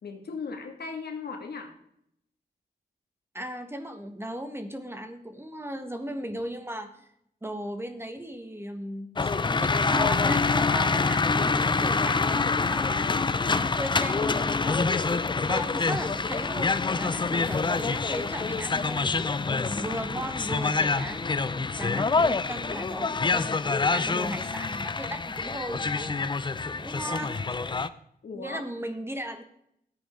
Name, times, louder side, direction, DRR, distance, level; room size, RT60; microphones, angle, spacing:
voice 1, 0.0-1.7 28.2-28.6, left 5 dB, 80° left, 4 dB, 2.2 m, -37 dB
voice 2, 3.3-7.1 7.4-15.1 15.4-16.7 17.0-19.1 19.6-21.2 21.8-26.3 26.8-27.4 28.3-29.4, equal, 15° right, 7 dB, 1.4 m, -37 dB
sound 1, 9.2-27.9, left 4 dB, 30° left, 0.6 m, -26 dB
13.5 x 9.3 x 3.8 m, 0.72 s
wide cardioid pair, 100°, 16 cm